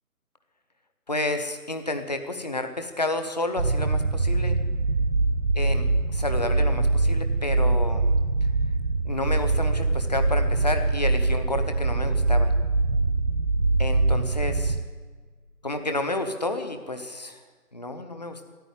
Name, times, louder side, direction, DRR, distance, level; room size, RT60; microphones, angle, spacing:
voice 1, 1.1-4.6 5.5-5.8 6.1-8.1 9.0-12.5 13.8-14.8 15.6-17.4 17.7-18.4, left 2 dB, 30° left, 7 dB, 0.9 m, -30 dB
sound 1, 3.6-14.8, right 3 dB, 55° right, 1.0 m, -23 dB
sound 2, 14.9-15.9, left 1 dB, 80° left, 2.6 m, -38 dB
14.0 x 9.6 x 9.4 m, 1.4 s
figure-of-eight pair, 155°, 46 cm